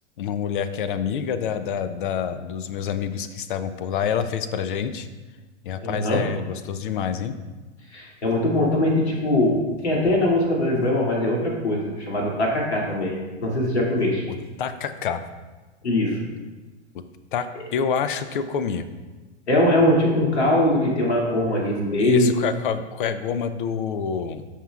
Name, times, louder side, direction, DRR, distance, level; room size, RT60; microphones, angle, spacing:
voice 1, 0.2-5.1 5.6-7.4 14.3-15.2 16.9-17.0 17.3-18.9 22.0-24.5, left 7 dB, 45° left, 12 dB, 0.6 m, -27 dB
voice 2, 5.8-6.2 7.9-14.3 15.8-16.3 19.5-22.3, left 1 dB, 65° left, -2 dB, 2.6 m, -21 dB
13.5 x 5.9 x 2.4 m, 1.2 s
figure-of-eight pair, 100°, 35 cm